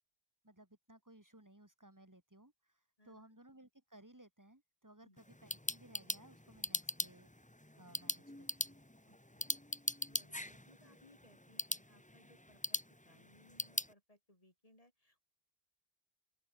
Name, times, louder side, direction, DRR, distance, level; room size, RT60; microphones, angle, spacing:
voice 1, 0.4-7.3 7.8-8.8, right 1 dB, 15° right, 2.7 m, -61 dB
sound 1, 5.2-13.9, left 1 dB, 10° left, 1.1 m, -42 dB
voice 2, 9.0-9.8 10.1-15.3, left 1 dB, 35° left, 5.0 m, -67 dB
open air
omnidirectional pair, 1.0 m